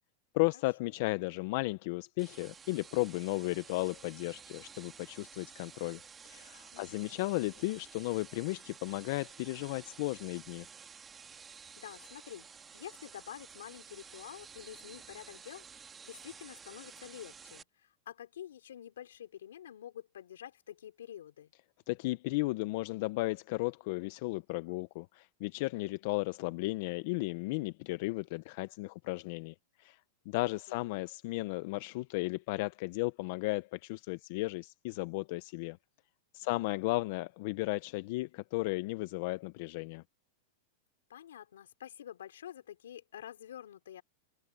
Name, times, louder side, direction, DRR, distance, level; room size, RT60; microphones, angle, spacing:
voice 1, 0.3-10.7 21.9-30.0 30.3-35.8 36.3-40.0, left 22 dB, 60° left, 0.6 m, -35 dB
sound 1, 2.2-17.6, right 6 dB, 20° right, 1.7 m, -52 dB
voice 2, 6.7-7.2 11.8-21.5 30.4-31.0 36.4-36.9 41.1-44.0, left 10 dB, 90° left, 4.6 m, -48 dB
hypercardioid pair, 125°, 0 cm